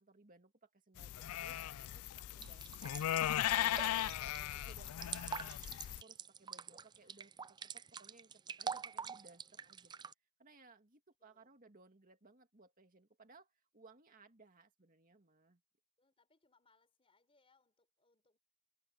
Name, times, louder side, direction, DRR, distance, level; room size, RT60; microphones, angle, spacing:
voice 1, 0.0-1.6 1.9-3.8 4.2-9.9 10.4-15.6, right 3 dB, 40° right, 2.2 m, -63 dB
sound 1, 1.0-6.0, left 12 dB, 85° left, 0.4 m, -37 dB
sound 2, 2.4-10.1, right 6 dB, 20° right, 0.4 m, -46 dB
voice 2, 11.2-11.5 16.0-18.4, left 3 dB, 25° left, 4.2 m, -75 dB
head